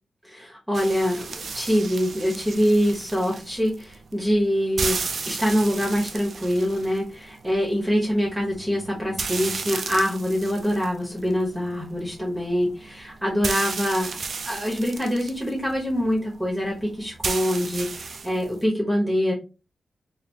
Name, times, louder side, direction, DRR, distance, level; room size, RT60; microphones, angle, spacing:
voice 1, 0.2-5.0 5.2-14.1 14.4-19.3, equal, 10° right, -3 dB, 1.1 m, -24 dB
sound 1, 0.7-18.6, right 4 dB, 60° right, 0.4 m, -35 dB
4.1 x 2.6 x 2.8 m, 0.31 s
wide cardioid pair, 105°, 0 cm